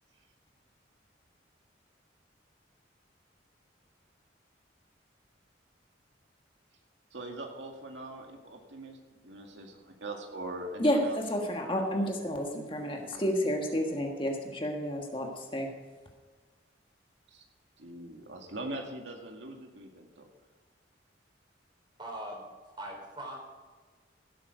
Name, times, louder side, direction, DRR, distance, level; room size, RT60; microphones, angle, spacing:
voice 1, 7.1-11.2 11.9-12.3 12.9-13.3 17.3-17.4 17.8-20.3, right 2 dB, 80° right, 2 dB, 2.1 m, -42 dB
voice 2, 10.8-15.7, equal, 30° left, 1 dB, 1.6 m, -30 dB
voice 3, 22.0-22.5 22.8-23.4, right 1 dB, 25° right, 0 dB, 3.9 m, -40 dB
16.5 x 8.6 x 5.0 m, 1.4 s
head